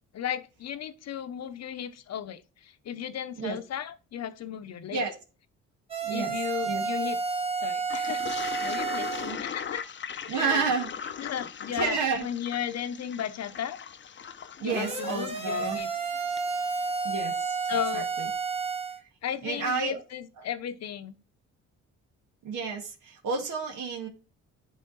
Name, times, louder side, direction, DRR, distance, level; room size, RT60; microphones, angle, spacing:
voice 1, 0.1-5.0 6.1-7.2 7.6-8.3 8.6-9.9 10.3-10.7 11.2-13.8 14.6-15.9 17.6-18.1 19.2-21.2, left 9 dB, 60° left, 0.9 m, -35 dB
sound 1, 5.9-9.3 14.7-19.0, right 5 dB, 20° right, 1.5 m, -31 dB
voice 2, 6.0-6.3 6.6-6.8 9.2-9.4 10.3-11.1 11.7-12.3 14.6-15.8 17.0-17.5 17.9-18.3 19.4-20.0 22.4-24.1, right 5 dB, 80° right, 1.9 m, -30 dB
Toilet flush, 7.9-16.5, left 7 dB, 40° left, 0.7 m, -39 dB
10.0 x 3.5 x 4.1 m
cardioid pair, 90°, 30 cm